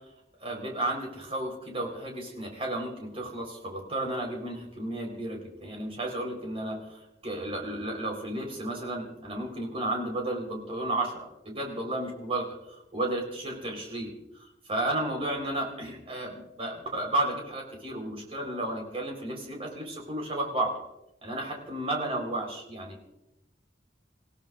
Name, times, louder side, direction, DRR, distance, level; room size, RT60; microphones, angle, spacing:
voice 1, 0.4-14.2 14.7-20.7 21.2-23.0, right 1 dB, 35° right, 1 dB, 4.1 m, -33 dB
29.0 x 16.0 x 2.5 m, 0.87 s
head